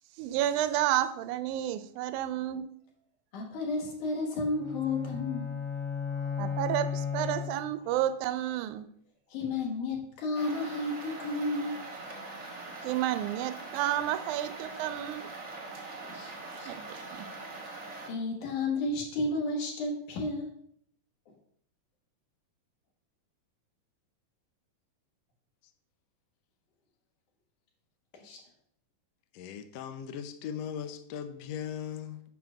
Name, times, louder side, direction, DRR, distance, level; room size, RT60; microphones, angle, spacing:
voice 1, 0.2-2.6 6.4-8.9 12.8-15.3 16.7-16.8 17.1-17.2, right 12 dB, 80° right, 11 dB, 1.9 m, -30 dB
voice 2, 3.3-5.6 6.2-6.3 9.3-11.8 16.1-16.8 18.1-20.5 28.1-28.4, left 2 dB, 70° left, 0 dB, 3.0 m, -32 dB
sound 1, 4.5-8.0, left 6 dB, 45° left, 2.4 m, -35 dB
sound 2, 10.3-18.1, right 3 dB, 45° right, 0.9 m, -42 dB
voice 3, 29.3-32.2, left 8 dB, 85° left, 8 dB, 1.5 m, -38 dB
9.0 x 3.7 x 6.3 m, 0.67 s
omnidirectional pair, 3.9 m